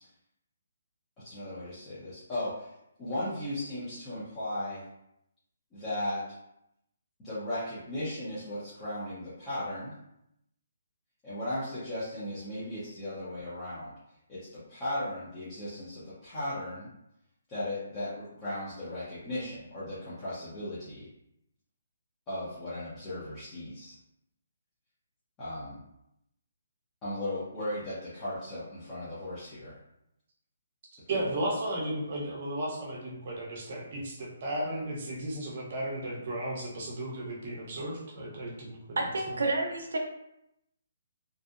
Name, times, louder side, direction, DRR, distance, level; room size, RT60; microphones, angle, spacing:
voice 1, 1.2-2.7 3.0-4.8 5.7-6.2 7.2-9.9 11.2-13.9 14.3-16.9 17.5-21.1 22.3-24.0 25.4-25.8 27.0-29.8 31.1-31.2, left 1 dB, 15° left, -14 dB, 0.6 m, -36 dB
voice 2, 31.1-39.0, right 1 dB, 35° right, -3 dB, 0.7 m, -34 dB
voice 3, 39.0-40.0, right 2 dB, 90° right, 2 dB, 0.5 m, -29 dB
2.6 x 2.0 x 2.4 m, 0.82 s
hypercardioid pair, 175°, 0 cm